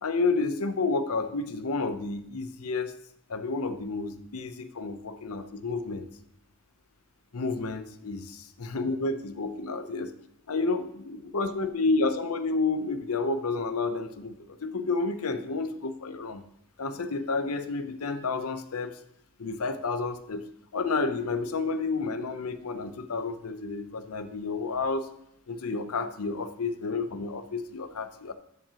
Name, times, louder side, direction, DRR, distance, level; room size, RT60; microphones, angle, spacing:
voice 1, 0.0-2.9 3.3-6.1 7.3-10.1 10.5-16.4 16.8-19.0 19.4-20.4 20.7-25.1 25.5-28.3, left 3 dB, 85° left, 10 dB, 0.7 m, -30 dB
12.5 x 7.4 x 2.9 m, 0.74 s
head